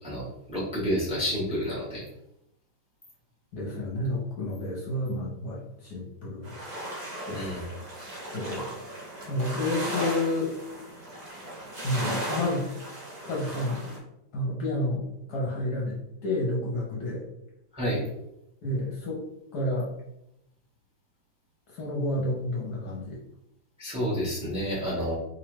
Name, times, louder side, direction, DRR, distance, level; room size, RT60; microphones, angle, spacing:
voice 1, 0.0-2.0 7.3-7.7 17.7-18.0 23.8-25.1, equal, 5° right, -6 dB, 1.1 m, -29 dB
voice 2, 3.5-6.5 7.3-7.5 8.3-8.8 9.2-10.6 11.8-12.7 13.2-14.0 14.3-17.2 18.6-19.3 19.5-19.9 21.7-23.2 25.0-25.1, left 1 dB, 60° left, -3 dB, 1.2 m, -30 dB
sound 1, 6.4-14.0, right 1 dB, 45° right, 0.5 m, -36 dB
3.5 x 3.2 x 3.0 m, 0.83 s
omnidirectional pair, 2.1 m